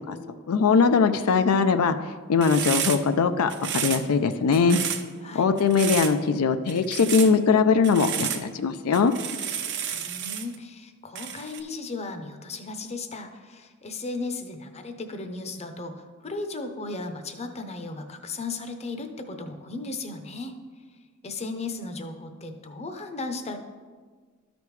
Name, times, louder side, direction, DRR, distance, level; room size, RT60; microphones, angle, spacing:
voice 1, 0.5-2.0 2.3-4.8 5.3-9.1, left 5 dB, 85° left, 9 dB, 0.4 m, -21 dB
sound 1, 2.4-3.2 3.5-4.2 4.5-5.0 5.6-6.2 6.7-7.3 7.8-8.5 8.9-10.6 11.2-11.6, right 9 dB, 55° right, 0.7 m, -31 dB
voice 2, 9.9-20.6 21.2-23.6, left 3 dB, 30° left, 7 dB, 0.7 m, -36 dB
13.0 x 5.1 x 3.2 m, 1.5 s
head